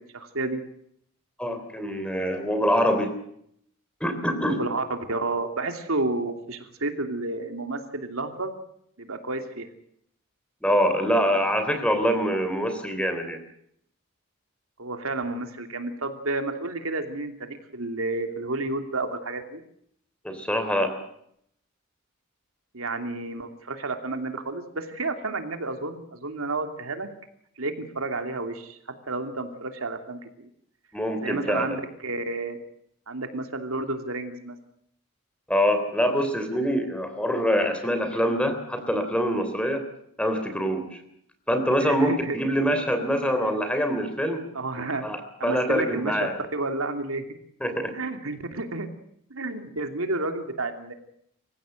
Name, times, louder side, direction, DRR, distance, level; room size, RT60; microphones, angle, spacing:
voice 1, 0.1-0.6 4.6-8.6 9.0-9.7 14.8-19.6 22.7-27.1 27.6-28.8 29.1-30.5 31.2-32.6 33.1-34.6 41.8-42.4 44.5-45.1 45.4-46.2 46.5-47.2 47.9-48.9 49.3-50.9, right 2 dB, 85° right, 6 dB, 2.9 m, -31 dB
voice 2, 1.4-3.2 4.0-4.6 10.6-13.4 20.2-21.0 30.9-31.6 35.5-39.8 40.2-41.0 41.5-44.4 45.0-46.3 47.6-48.0, equal, 5° left, 8 dB, 3.4 m, -25 dB
26.5 x 16.0 x 7.9 m, 0.72 s
head